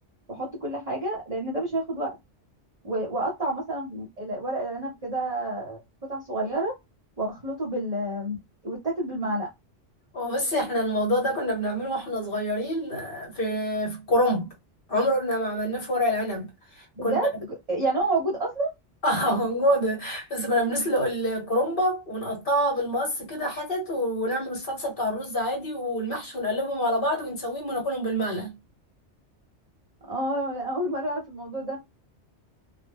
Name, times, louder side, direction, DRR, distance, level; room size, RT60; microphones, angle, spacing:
voice 1, 0.3-2.1 2.8-6.8 7.2-9.5 17.0-18.7 30.1-31.8, right 2 dB, 40° right, 0.7 m, -29 dB
voice 2, 10.1-14.5 14.9-16.5 16.7-17.2 19.0-28.6, equal, 55° left, 1.1 m, -26 dB
2.2 x 2.1 x 3.4 m
omnidirectional pair, 1.2 m